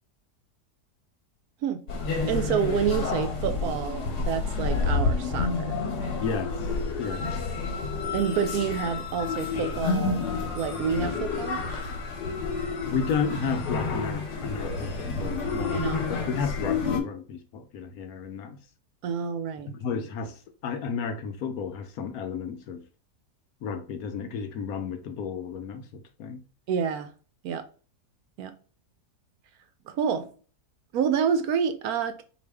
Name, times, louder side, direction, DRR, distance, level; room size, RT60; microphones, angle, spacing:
sound 1, 1.9-17.0, left 4 dB, 85° left, 1.4 m, -29 dB
voice 1, 2.3-5.8 8.1-10.2 10.5-11.6 15.7-16.1 19.0-19.7 26.7-27.1 27.4-27.7 28.4-28.5 29.9-30.3 30.9-32.2, right 7 dB, 70° right, 1.0 m, -28 dB
voice 2, 6.2-6.7 7.0-7.2 12.8-15.9 16.3-18.6 19.7-22.8 23.6-26.4, left 6 dB, 70° left, 1.0 m, -32 dB
4.2 x 2.8 x 3.4 m
omnidirectional pair, 1.7 m